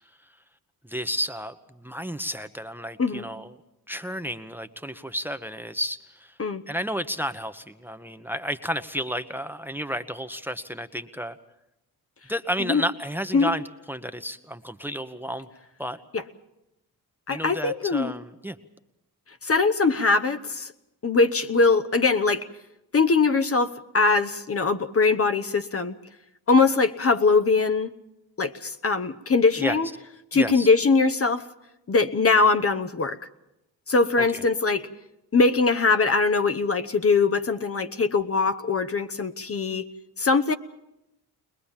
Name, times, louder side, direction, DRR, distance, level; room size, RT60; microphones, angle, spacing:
voice 1, 0.8-3.5 3.9-6.3 6.7-11.4 12.3-15.5 15.8-16.0 17.3-18.6 29.6-29.8 30.3-30.7 34.2-34.4, equal, 5° right, 11 dB, 1.0 m, -32 dB
voice 2, 17.3-18.1 19.4-20.7 21.0-22.5 22.9-25.9 26.5-27.9 28.4-29.9 30.3-31.5 31.9-33.2 33.9-34.9 35.3-39.9 40.2-40.5, left 4 dB, 35° left, 10 dB, 1.1 m, -22 dB
21.5 x 21.0 x 7.3 m, 0.88 s
supercardioid pair, 60°, 39 cm